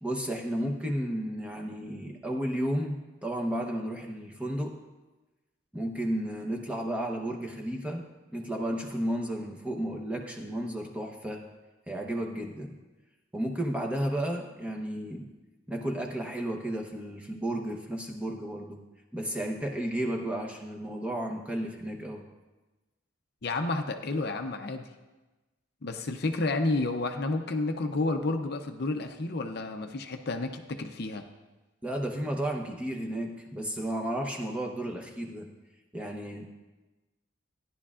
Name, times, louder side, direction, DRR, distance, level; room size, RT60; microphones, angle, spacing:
voice 1, 0.0-4.8 5.7-11.4 11.9-12.8 13.3-15.3 15.7-18.8 19.1-22.2 31.8-35.5 35.9-36.5, right 1 dB, 5° right, 1 dB, 0.9 m, -33 dB
voice 2, 23.4-24.9 25.8-31.2, left 2 dB, 55° left, 6 dB, 0.6 m, -30 dB
14.5 x 10.5 x 2.5 m, 1.2 s
head